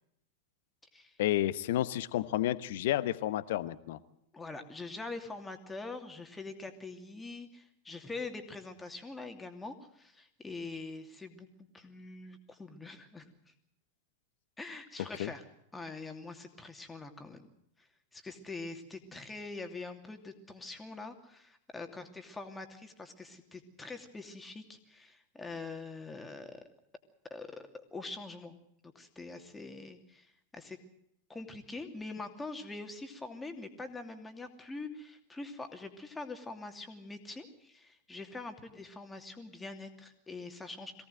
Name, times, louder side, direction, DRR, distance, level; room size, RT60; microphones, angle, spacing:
voice 1, 1.2-4.0 15.2-15.3, left 14 dB, 55° left, 16 dB, 1.0 m, -31 dB
voice 2, 4.3-11.5 11.7-13.5 14.6-15.4 15.7-17.4 17.8-17.9 18.1-26.6 27.3-28.6 28.9-30.8 31.3-40.9, left 3 dB, 10° left, 6 dB, 2.7 m, -44 dB
23.0 x 17.5 x 7.8 m, 0.75 s
figure-of-eight pair, 90°, 0 cm